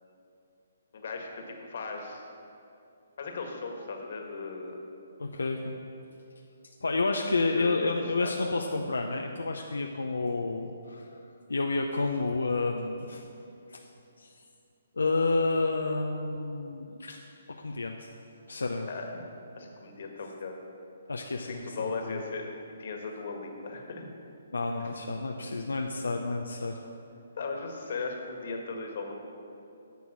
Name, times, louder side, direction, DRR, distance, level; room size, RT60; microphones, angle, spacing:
voice 1, 0.9-2.3 3.2-4.8 7.6-7.9 8.2-8.3 18.9-19.1 19.6-20.6 21.4-22.5 22.8-24.1 24.8-24.9 27.3-29.1, left 4 dB, 60° left, 2 dB, 1.7 m, -37 dB
voice 2, 5.2-5.8 6.8-11.2 11.5-13.3 13.7-13.8 14.2-14.3 15.0-17.2 17.6-18.1 18.5-18.9 21.1-22.2 24.5-26.8, left 3 dB, 90° left, 2 dB, 0.7 m, -30 dB
10.5 x 7.0 x 6.2 m, 2.7 s
hypercardioid pair, 145°, 0 cm